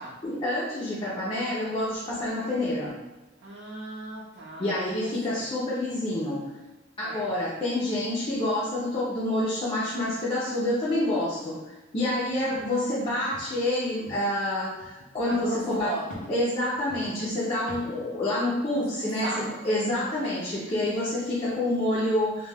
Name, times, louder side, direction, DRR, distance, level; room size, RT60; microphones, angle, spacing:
voice 1, 0.2-3.0 4.6-6.4 7.0-11.6 11.9-15.9 16.3-22.5, left 1 dB, 30° left, -8 dB, 0.5 m, -28 dB
voice 2, 3.4-5.5 7.0-7.3 12.3-12.7 15.3-16.3 18.7-19.6 19.9-20.1, right 1 dB, 70° right, -5 dB, 0.5 m, -36 dB
sound 1, 12.6-13.1 13.3-13.6 13.8-14.3 14.6-15.1 15.7-16.3 16.7-18.0, left 1 dB, 75° left, 0.6 m, -44 dB
2.2 x 2.2 x 3.3 m, 1.1 s
head